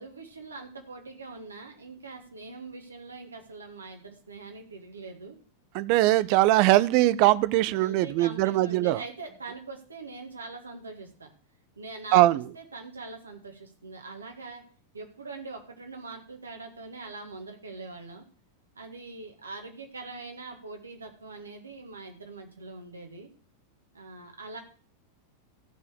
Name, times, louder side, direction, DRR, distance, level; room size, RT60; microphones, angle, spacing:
voice 1, 0.0-5.4 6.0-6.2 7.7-11.3 11.8-12.2 12.6-14.6 14.9-18.2 18.8-23.3 23.9-24.6, right 3 dB, 75° right, 3 dB, 2.0 m, -42 dB
voice 2, 5.7-9.0 12.1-12.4, right 16 dB, 45° right, 17 dB, 0.5 m, -21 dB
14.5 x 4.8 x 6.7 m, 0.41 s
figure-of-eight pair, 90°, 0 cm